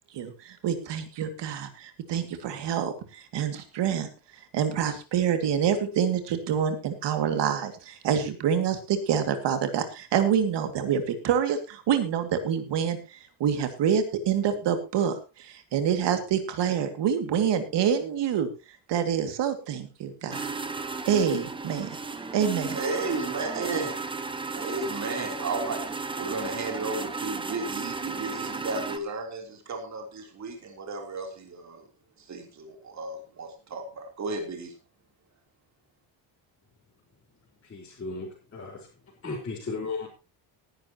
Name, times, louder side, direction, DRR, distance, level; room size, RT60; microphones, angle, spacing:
voice 1, 0.1-4.1 4.5-18.5 18.9-20.5 21.1-21.9 22.3-22.8, right 8 dB, 55° right, 8 dB, 2.4 m, -27 dB
sound 1, 20.3-29.0, right 4 dB, 10° right, 0.7 m, -34 dB
voice 2, 22.7-24.0 24.5-31.8 32.2-34.7, right 3 dB, 35° right, 3 dB, 3.5 m, -34 dB
voice 3, 37.6-38.9 39.2-40.1, left 3 dB, 25° left, -6 dB, 3.8 m, -35 dB
18.5 x 11.0 x 3.0 m, 0.29 s
cardioid pair, 175°, 49 cm